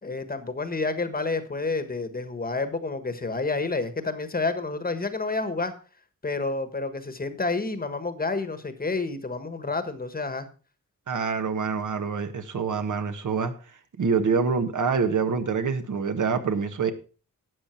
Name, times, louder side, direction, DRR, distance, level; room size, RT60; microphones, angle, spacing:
voice 1, 0.0-5.7 6.2-10.5, left 3 dB, 25° left, 10 dB, 1.4 m, -29 dB
voice 2, 11.1-13.5 14.0-16.9, right 5 dB, 60° right, 8 dB, 1.5 m, -26 dB
12.5 x 8.7 x 4.5 m, 0.35 s
wide cardioid pair, 135°, 34 cm